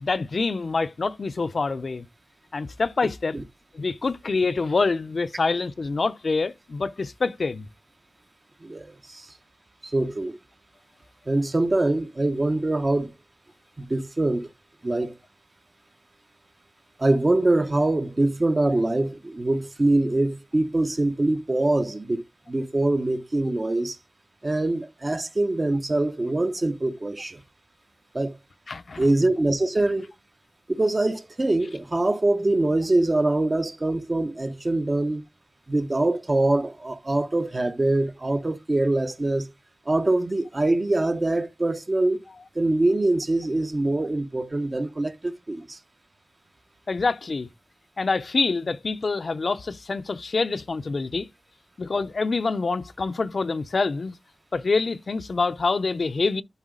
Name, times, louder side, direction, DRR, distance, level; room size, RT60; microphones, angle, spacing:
voice 1, 0.0-2.1 2.5-3.4 3.7-7.7 28.7-29.1 46.9-47.5 48.0-51.3 51.8-54.2 54.5-56.4, left 4 dB, 70° left, 0.6 m, -26 dB
voice 2, 8.6-9.3 9.8-10.4 11.3-13.1 13.8-14.5 14.8-15.1 17.0-24.0 24.4-27.4 28.1-28.3 29.0-30.1 30.7-35.2 35.7-39.5 39.9-42.2 42.5-45.8, right 2 dB, 40° right, 1.0 m, -24 dB
11.5 x 3.9 x 3.8 m
wide cardioid pair, 70°, 0 cm